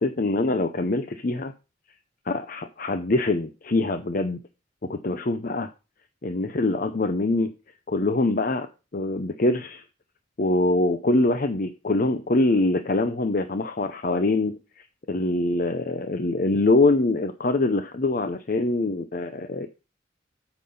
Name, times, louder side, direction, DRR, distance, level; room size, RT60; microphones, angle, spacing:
voice 1, 0.0-1.5 2.3-4.4 4.9-5.7 6.2-7.5 7.9-9.8 10.4-19.7, left 2 dB, 45° left, 9 dB, 0.7 m, -24 dB
8.6 x 6.0 x 5.4 m, 0.30 s
head